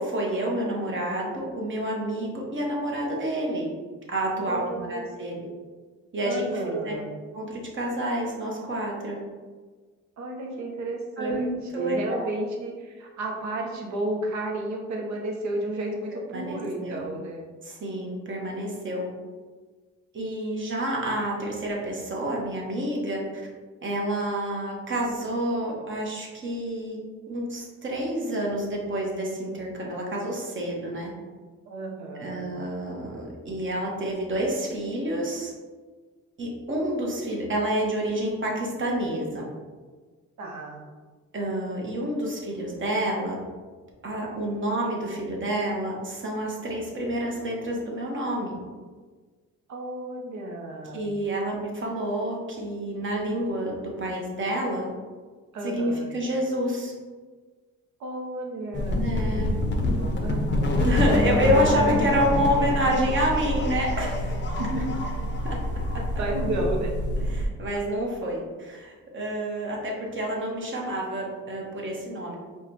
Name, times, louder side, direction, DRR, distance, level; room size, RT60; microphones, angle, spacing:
voice 1, 0.0-3.7 4.1-5.5 6.1-6.9 7.3-9.2 11.2-12.2 16.1-17.1 17.6-19.1 20.1-23.4 23.8-27.0 27.3-31.1 32.2-35.5 36.4-39.5 41.3-43.4 44.0-48.6 50.9-54.9 55.6-56.9 59.0-59.5 60.7-64.3 65.4-65.6 67.3-72.4, right 1 dB, 40° right, -2 dB, 1.0 m, -28 dB
voice 2, 4.4-5.0 5.3-5.4 6.2-7.1 10.2-17.4 31.7-32.5 40.4-40.8 49.7-51.1 55.5-56.1 58.0-59.5 59.9-60.9 64.6-64.8 66.2-66.9, right 1 dB, 70° right, 0 dB, 0.8 m, -32 dB
sound 1, 58.7-67.5, left 1 dB, 40° left, 0.6 m, -26 dB
4.7 x 2.3 x 2.8 m, 1.4 s
cardioid pair, 90°, 30 cm